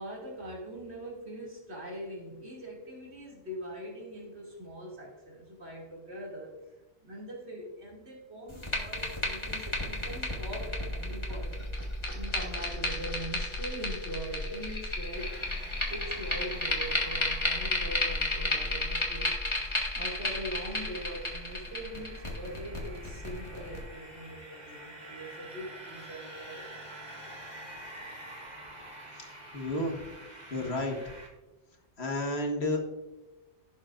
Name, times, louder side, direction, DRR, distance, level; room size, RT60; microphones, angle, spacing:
voice 1, 0.0-6.5 7.0-11.7 12.1-15.3 15.9-19.3 19.7-26.8, right 1 dB, 65° right, -3 dB, 2.9 m, -42 dB
sound 1, 8.5-23.8, left 2 dB, 25° left, 1.8 m, -33 dB
sound 2, 15.1-31.3, right 1 dB, 35° right, 1.9 m, -48 dB
voice 2, 29.5-30.0 30.5-31.0 32.0-32.8, left 1 dB, 65° left, 2 dB, 1.7 m, -31 dB
16.0 x 7.3 x 2.5 m, 1.1 s
omnidirectional pair, 1.2 m